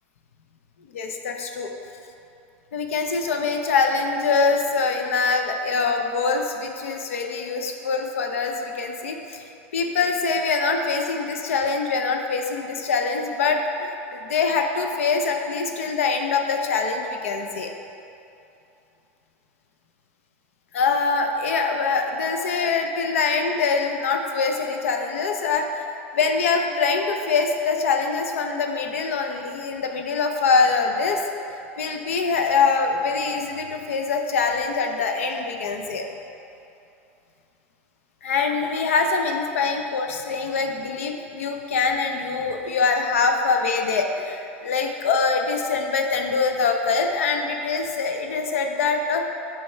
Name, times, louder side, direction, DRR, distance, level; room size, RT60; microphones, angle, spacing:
voice 1, 0.9-1.7 2.7-9.4 9.7-17.7 20.7-25.8 26.1-31.2 31.8-36.1 38.2-49.3, left 4 dB, 85° left, 4 dB, 0.5 m, -24 dB
5.3 x 3.4 x 5.3 m, 2.8 s
hypercardioid pair, 100°, 7 cm